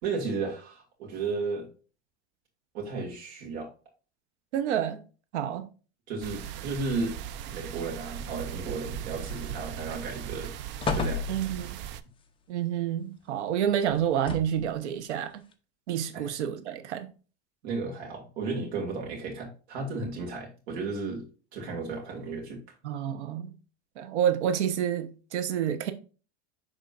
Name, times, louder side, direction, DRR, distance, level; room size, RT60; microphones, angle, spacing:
voice 1, 0.0-1.7 2.7-3.7 6.1-7.2 7.5-10.5 10.9-11.2 16.1-16.3 17.6-21.2 21.5-22.6, right 4 dB, 75° right, 2.2 m, -34 dB
voice 2, 4.5-5.0 5.3-5.7 11.3-11.8 12.5-15.4 15.9-17.1 22.8-23.5 24.0-25.9, right 9 dB, 90° right, 1.0 m, -29 dB
sound 1, 6.2-12.0, right 10 dB, 35° right, 0.4 m, -38 dB
sound 2, 9.2-9.8 10.2-10.3 10.8-11.8 13.9-14.7 15.5-15.6, left 4 dB, 15° left, 0.6 m, -33 dB
11.0 x 3.6 x 2.5 m
supercardioid pair, 140°, 33 cm